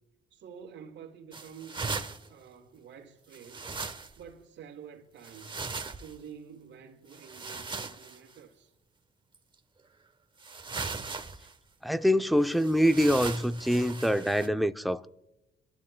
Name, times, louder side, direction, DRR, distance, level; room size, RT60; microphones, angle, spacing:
voice 1, 0.3-3.7 4.2-5.7 6.0-8.7, right 7 dB, 75° right, 2.0 m, -49 dB
sound 1, 1.3-2.3 3.3-4.3 5.2-6.1 7.1-8.2 9.3-9.4 10.4-11.5 12.5-14.5, right 4 dB, 25° right, 1.0 m, -38 dB
voice 2, 11.8-15.1, equal, ahead, 0.6 m, -25 dB
29.0 x 13.0 x 2.2 m
cardioid pair, 90°, 20 cm